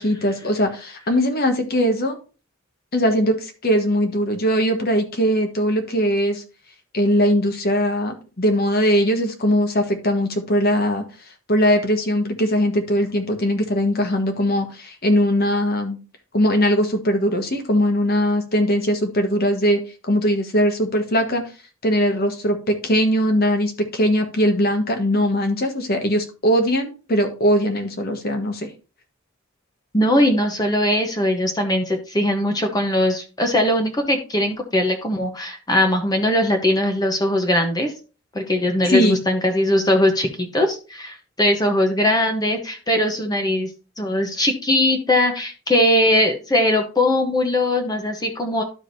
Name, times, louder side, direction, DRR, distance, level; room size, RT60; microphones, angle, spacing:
voice 1, 0.0-2.2 2.9-6.4 6.9-11.0 11.5-16.0 16.3-19.8 20.1-21.5 21.8-28.7 38.9-39.2, equal, 50° left, 5 dB, 1.3 m, -20 dB
voice 2, 29.9-37.9 38.3-43.7 44.0-48.6, left 1 dB, 20° left, 4 dB, 0.9 m, -20 dB
12.0 x 4.9 x 2.7 m, 0.34 s
head